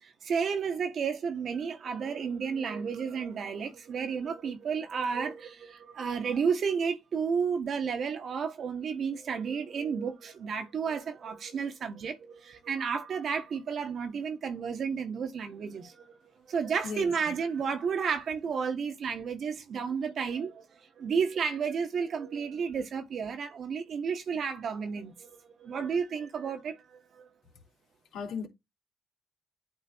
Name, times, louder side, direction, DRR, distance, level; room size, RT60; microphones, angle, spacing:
voice 1, 0.0-16.2 16.5-20.7 21.0-27.3, right 6 dB, 65° right, 1.6 m, -32 dB
voice 2, 16.8-17.4 28.1-28.5, left 5 dB, 75° left, 2.9 m, -36 dB
9.0 x 3.6 x 4.7 m
hypercardioid pair, 45°, 0 cm